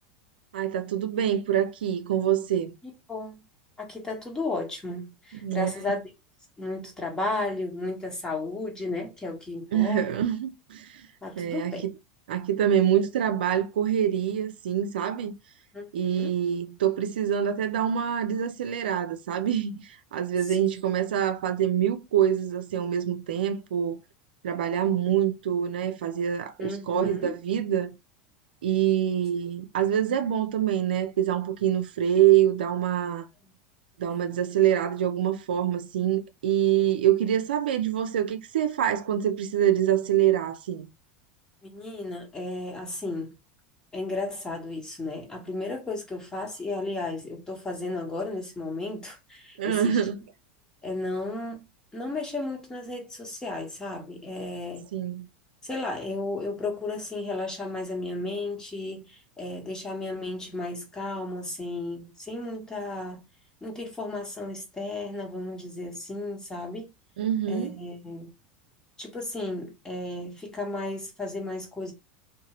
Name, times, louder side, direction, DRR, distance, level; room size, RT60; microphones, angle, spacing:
voice 1, 0.5-2.7 5.3-5.7 9.7-11.1 11.4-11.9 12.3-15.3 15.9-24.0 24.4-27.9 28.6-33.3 34.0-40.9 49.6-50.2 54.9-55.3 67.2-67.7, right 10 dB, 90° right, 0.4 m, -25 dB
voice 2, 3.8-6.0 6.6-10.1 11.2-11.8 15.7-16.3 20.5-20.7 26.6-27.4 34.1-34.3 41.6-43.3 43.9-50.0 50.8-51.6 51.9-54.9 55.6-63.2 63.6-66.9 67.5-68.3 69.0-71.9, left 2 dB, 15° left, 1.2 m, -34 dB
2.7 x 2.2 x 2.9 m
supercardioid pair, 110°, 5 cm